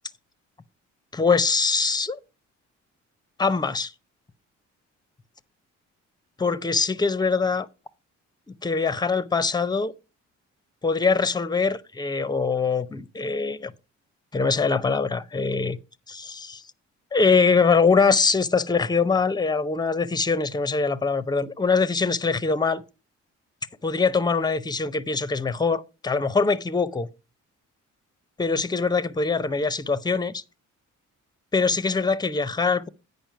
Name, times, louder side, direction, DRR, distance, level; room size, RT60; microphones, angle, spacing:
voice 1, 1.1-2.2 3.4-3.9 6.4-7.7 8.5-9.9 10.8-13.7 14.3-15.8 16.1-16.6 17.1-22.8 23.8-27.1 28.4-30.4 31.5-32.9, left 4 dB, 15° left, 0.6 m, -23 dB
8.9 x 5.4 x 5.6 m
cardioid pair, 90°, 30 cm